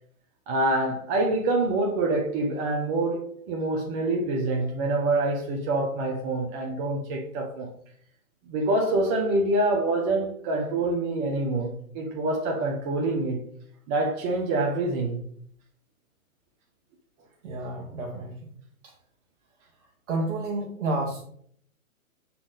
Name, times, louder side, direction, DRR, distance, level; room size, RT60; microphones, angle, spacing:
voice 1, 0.5-7.7 8.5-13.4 13.9-15.2, right 2 dB, 25° right, 0.9 m, -26 dB
voice 2, 17.4-18.5 18.8-18.9 20.1-21.2, right 2 dB, 55° right, 1.4 m, -30 dB
7.5 x 4.3 x 4.0 m
hypercardioid pair, 140°, 42 cm